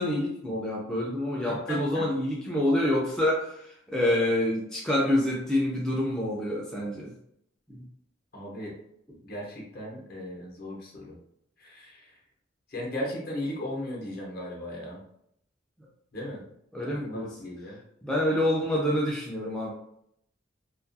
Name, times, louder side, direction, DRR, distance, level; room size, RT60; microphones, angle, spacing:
voice 1, 0.0-7.1 7.7-7.8 16.7-17.3 18.0-19.7, left 1 dB, 5° left, -5 dB, 0.3 m, -27 dB
voice 2, 1.5-2.1 8.3-8.8 9.2-11.2 11.6-12.2 12.7-15.0 16.1-16.4 16.8-17.8, left 1 dB, 50° left, -2 dB, 0.7 m, -37 dB
2.3 x 2.2 x 2.5 m, 0.73 s
head